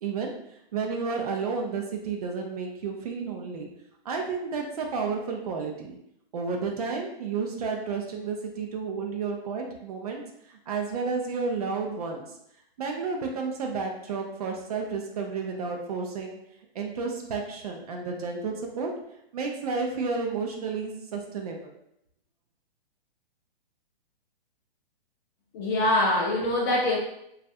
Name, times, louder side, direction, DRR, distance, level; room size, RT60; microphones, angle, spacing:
voice 1, 0.0-3.7 4.0-6.0 6.3-12.4 12.8-16.4 16.7-18.9 19.3-21.7, right 4 dB, 40° right, 2 dB, 0.5 m, -31 dB
voice 2, 25.5-27.0, left 1 dB, 20° left, -3 dB, 0.5 m, -24 dB
3.0 x 2.4 x 2.7 m, 0.77 s
hypercardioid pair, 140°, 31 cm